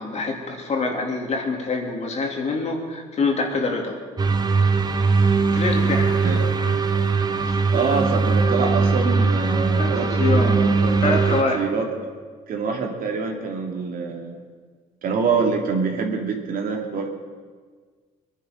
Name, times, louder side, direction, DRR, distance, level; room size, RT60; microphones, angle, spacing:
voice 1, 0.0-3.9 5.5-6.1 6.6-6.8 9.8-10.5 11.0-11.7, left 3 dB, 40° left, 1 dB, 2.9 m, -25 dB
sound 1, 4.2-11.4, right 4 dB, 25° right, 1.1 m, -20 dB
voice 2, 7.4-11.9 12.5-14.4 15.0-17.1, right 5 dB, 60° right, 2 dB, 2.6 m, -26 dB
23.0 x 11.0 x 5.2 m, 1.5 s
cardioid pair, 110°, 17 cm